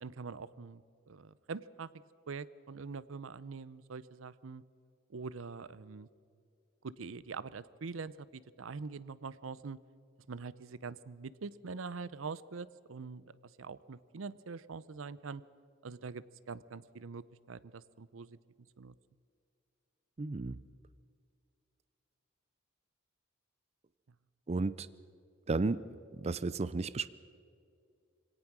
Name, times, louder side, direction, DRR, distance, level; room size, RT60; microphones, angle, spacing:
voice 1, 0.0-1.9 2.3-4.6 5.1-6.1 6.8-9.8 10.3-13.3 13.6-15.4 15.8-18.4 18.8-18.9, right 4 dB, 80° right, 18 dB, 0.6 m, -44 dB
voice 2, 20.2-20.6 24.5-24.9 25.5-25.8 26.2-27.1, right 3 dB, 30° right, 16 dB, 0.5 m, -33 dB
24.5 x 17.5 x 6.1 m, 2.4 s
head